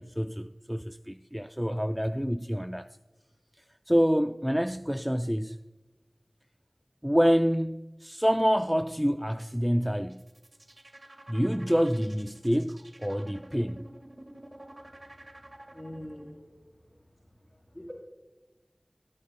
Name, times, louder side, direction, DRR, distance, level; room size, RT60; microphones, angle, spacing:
voice 1, 0.0-3.0 3.9-5.6 7.0-10.2 11.3-13.9, equal, 5° right, 0.3 m, -27 dB
sound 1, 10.0-16.3, right 1 dB, 50° right, 1.8 m, -50 dB
voice 2, 15.7-16.5 17.7-17.9, equal, 30° left, 3.5 m, -43 dB
20.0 x 10.0 x 2.2 m
wide cardioid pair, 50°, 0 cm